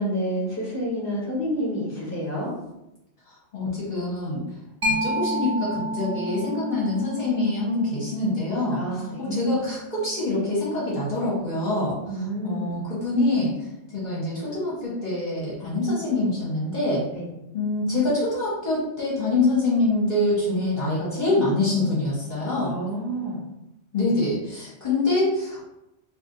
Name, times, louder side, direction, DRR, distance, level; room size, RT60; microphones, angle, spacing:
voice 1, 0.0-2.5 8.7-9.4 12.1-12.8 17.1-17.3 22.6-23.4, right 1 dB, 15° left, -5 dB, 1.0 m, -29 dB
voice 2, 3.5-4.4 5.0-13.5 13.9-17.0 17.5-22.8 23.9-25.7, left 2 dB, 45° left, -7 dB, 1.0 m, -25 dB
Mallet percussion, 4.8-12.1, equal, 30° right, 0.4 m, -32 dB
2.6 x 2.5 x 3.7 m, 0.88 s
omnidirectional pair, 1.2 m